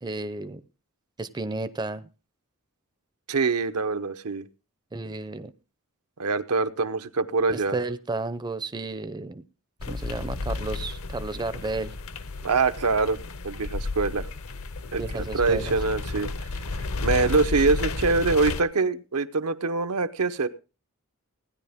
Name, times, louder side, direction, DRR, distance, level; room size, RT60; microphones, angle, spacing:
voice 1, 0.0-0.6 1.2-2.0 4.9-5.5 7.5-9.4 9.9-11.9 15.0-15.7, right 2 dB, 20° right, 0.5 m, -32 dB
voice 2, 3.3-4.5 6.2-7.8 12.4-13.2 13.4-14.3 14.9-16.3 17.0-20.5, right 3 dB, 80° right, 0.9 m, -24 dB
sound 1, 9.8-18.6, left 3 dB, 65° left, 0.8 m, -32 dB
16.5 x 10.5 x 3.5 m
head